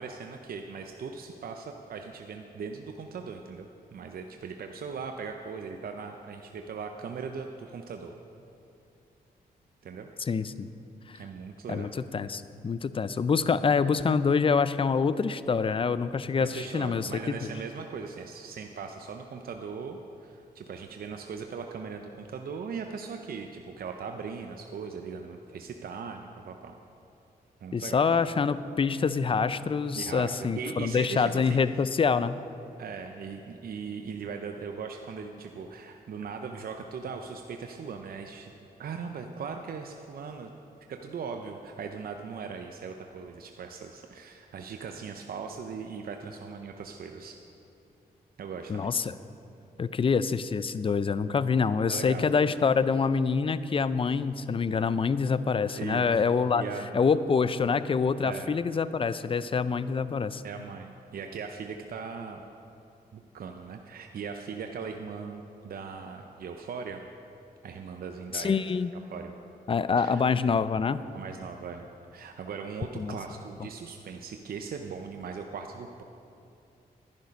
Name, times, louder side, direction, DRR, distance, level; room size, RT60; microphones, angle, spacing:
voice 1, 0.0-8.1 9.8-10.1 11.2-12.0 16.4-26.7 27.6-28.0 29.9-31.8 32.8-38.5 38.8-40.5 40.9-47.4 48.4-48.9 51.9-52.3 55.8-56.2 56.5-56.9 58.2-58.6 60.4-62.4 63.1-67.0 67.6-68.6 69.1-69.3 70.0-70.2 71.1-71.9 72.1-76.0, right 5 dB, 65° right, 4 dB, 0.7 m, -39 dB
voice 2, 10.2-10.7 11.1-11.2 11.7-17.4 27.7-32.3 48.7-49.1 49.8-56.6 56.9-60.4 68.3-68.9 69.7-71.0 72.9-73.2, left 5 dB, 35° left, 15 dB, 0.4 m, -26 dB
10.5 x 10.5 x 5.3 m, 2.7 s
cardioid pair, 70°, 17 cm